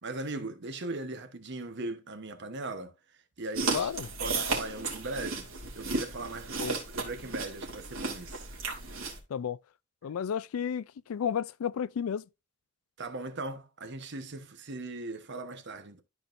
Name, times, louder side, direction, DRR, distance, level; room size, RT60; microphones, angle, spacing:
voice 1, 0.0-3.0 3.4-3.9 4.2-5.5 5.7-8.5 13.0-16.0, right 2 dB, 55° right, 1.1 m, -39 dB
sound 1, 3.5-9.2, right 3 dB, 80° right, 2.8 m, -34 dB
voice 2, 3.7-4.1 6.6-6.8 9.3-9.6 10.0-12.2, left 8 dB, 85° left, 0.4 m, -32 dB
13.0 x 4.5 x 2.6 m
head